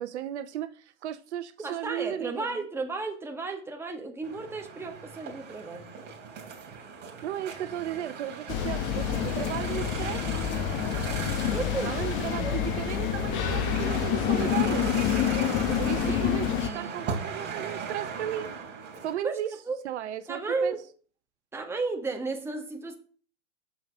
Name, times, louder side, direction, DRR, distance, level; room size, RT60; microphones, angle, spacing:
voice 1, 0.0-2.6 7.2-10.5 11.8-14.9 15.8-18.5 19.0-19.5 19.8-20.8, right 11 dB, 65° right, 0.9 m, -35 dB
voice 2, 1.6-6.0 11.5-12.0 12.3-12.6 15.7-15.8 16.0-17.0 19.2-19.8 20.3-20.9 21.5-22.9, right 3 dB, 5° right, 1.3 m, -34 dB
sound 1, 4.2-19.1, right 6 dB, 25° right, 2.9 m, -38 dB
sound 2, 8.5-16.7, left 9 dB, 30° left, 1.1 m, -28 dB
6.5 x 5.8 x 6.5 m
hypercardioid pair, 125°, 38 cm